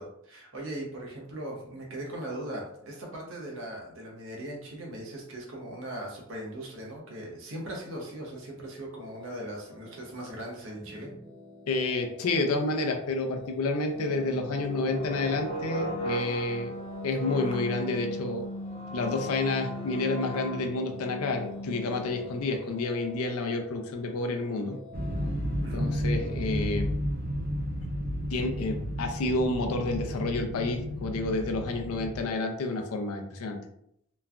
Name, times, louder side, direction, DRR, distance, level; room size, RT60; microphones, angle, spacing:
voice 1, 0.0-11.1 25.6-25.9, right 1 dB, 65° right, -2 dB, 0.8 m, -39 dB
sound 1, 9.0-26.8, left 4 dB, ahead, 0.8 m, -50 dB
voice 2, 11.7-16.7 17.0-18.4 18.9-24.8 25.7-26.9 28.3-33.6, left 2 dB, 85° left, 4 dB, 0.5 m, -29 dB
sound 2, 14.0-22.7, equal, 25° left, 0.4 m, -37 dB
sound 3, 24.9-32.3, equal, 40° right, 0.4 m, -32 dB
3.1 x 2.2 x 2.4 m, 0.73 s
head